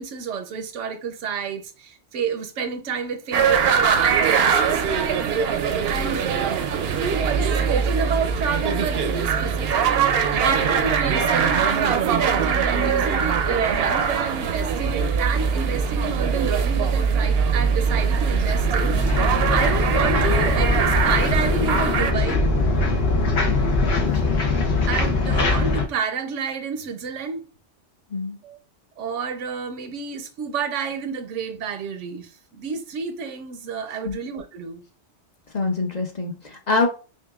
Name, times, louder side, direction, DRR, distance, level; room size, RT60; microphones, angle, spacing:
voice 1, 0.0-4.8 5.8-22.5 24.3-24.4 24.9-27.4 28.4-28.6 29.0-34.8, right 6 dB, 90° right, 1.0 m, -29 dB
sound 1, 3.3-22.1, right 6 dB, 65° right, 0.7 m, -22 dB
sound 2, 17.8-25.8, left 3 dB, 65° left, 1.1 m, -22 dB
voice 2, 35.5-36.9, left 3 dB, 40° left, 0.7 m, -25 dB
5.4 x 2.5 x 2.3 m
omnidirectional pair, 1.2 m